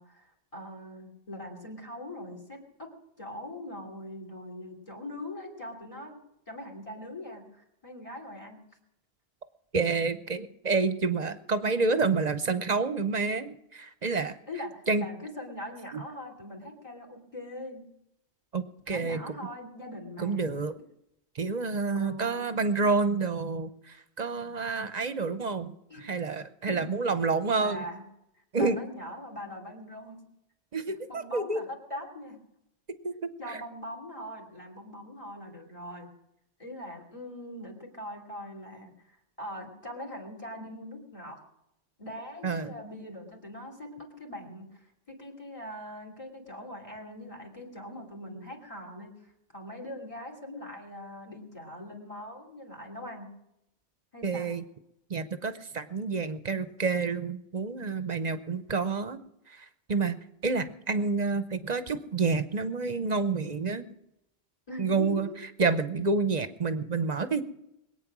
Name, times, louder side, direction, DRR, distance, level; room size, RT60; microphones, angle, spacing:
voice 1, 0.0-6.2 6.5-8.6 14.5-17.9 18.9-20.5 21.9-22.4 25.9-26.0 26.7-26.9 27.5-28.0 28.4-30.2 31.1-32.4 33.4-36.1 36.6-41.4 42.0-53.3 54.1-54.5 64.7-65.4, left 1 dB, 30° left, 2 dB, 3.0 m, -42 dB
voice 2, 9.7-14.3 14.9-15.1 15.9-16.0 18.5-19.3 20.2-20.7 21.3-25.7 26.0-27.8 28.5-28.8 30.7-31.6 33.0-33.6 42.4-42.7 54.2-54.6 55.1-59.2 59.5-63.8 64.8-65.3 65.6-67.4, right 4 dB, 40° right, 12 dB, 0.9 m, -29 dB
21.5 x 9.0 x 6.1 m, 0.81 s
omnidirectional pair, 1.1 m